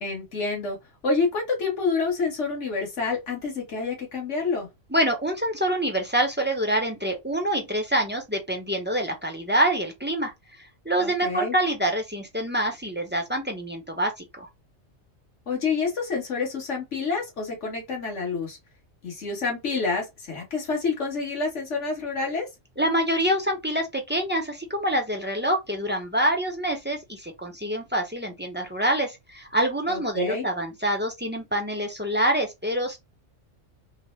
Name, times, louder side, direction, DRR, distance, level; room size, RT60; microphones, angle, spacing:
voice 1, 0.0-0.8 1.0-4.7 11.0-11.5 15.5-18.6 19.0-22.5 29.9-30.5, left 4 dB, 65° left, 1.8 m, -28 dB
voice 2, 4.9-10.3 10.8-14.5 22.8-33.0, right 1 dB, 10° right, 0.6 m, -26 dB
3.8 x 2.1 x 3.2 m
omnidirectional pair, 1.3 m